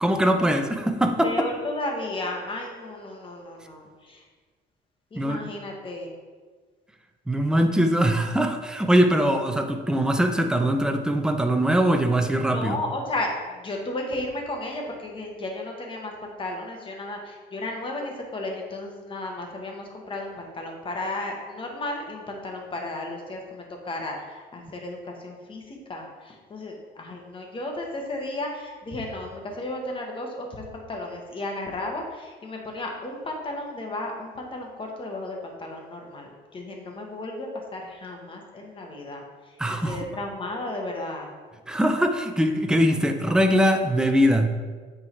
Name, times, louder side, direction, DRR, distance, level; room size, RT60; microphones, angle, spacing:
voice 1, 0.0-1.3 5.1-5.4 7.3-12.8 39.6-40.0 41.7-44.5, equal, 5° right, 5 dB, 0.6 m, -22 dB
voice 2, 1.2-4.2 5.1-6.1 12.5-39.6 39.8-41.3, left 2 dB, 30° left, 1 dB, 1.4 m, -34 dB
8.6 x 3.8 x 4.6 m, 1.5 s
cardioid pair, 110°, 17 cm